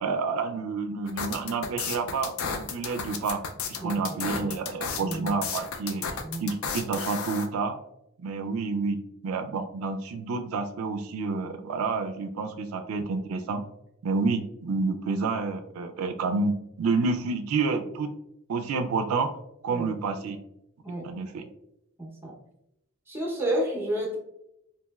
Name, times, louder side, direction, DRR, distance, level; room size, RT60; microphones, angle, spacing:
voice 1, 0.0-3.4 3.7-6.0 6.4-7.8 8.2-9.0 9.2-13.6 14.0-18.1 18.5-19.3 19.6-20.4 21.0-21.5, right 4 dB, 90° right, 7 dB, 0.3 m, -29 dB
sound 1, 1.1-7.5, left 5 dB, 85° left, 0.4 m, -33 dB
voice 2, 5.0-5.4 6.2-6.5 19.7-19.9 20.8-21.1 22.0-22.3 23.1-24.2, right 1 dB, 10° right, -2 dB, 0.7 m, -31 dB
3.0 x 2.7 x 2.2 m, 0.82 s
head